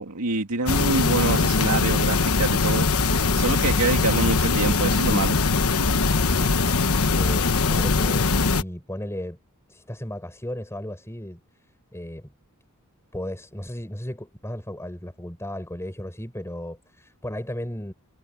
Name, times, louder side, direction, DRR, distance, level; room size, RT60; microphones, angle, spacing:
voice 1, 0.0-5.4, right 3 dB, 80° right, 2.2 m, -26 dB
sound 1, 0.7-8.6, left 4 dB, 70° left, 1.2 m, -21 dB
voice 2, 7.1-9.4 9.7-11.4 11.9-12.3 13.1-17.9, left 1 dB, 10° left, 5.8 m, -35 dB
head